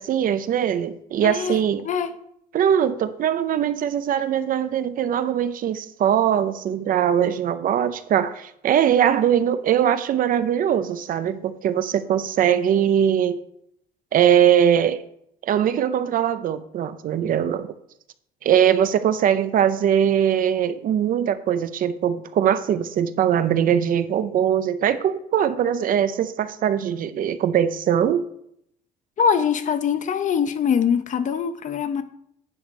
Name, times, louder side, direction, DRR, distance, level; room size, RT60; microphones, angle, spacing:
voice 1, 0.0-1.8 2.5-13.4 14.1-15.0 15.4-17.7 18.4-28.2, right 9 dB, 55° right, 0.7 m, -21 dB
voice 2, 1.2-1.6 1.8-2.1 29.2-32.0, left 7 dB, 45° left, 0.8 m, -22 dB
9.9 x 3.9 x 6.5 m
cardioid pair, 110°, 17 cm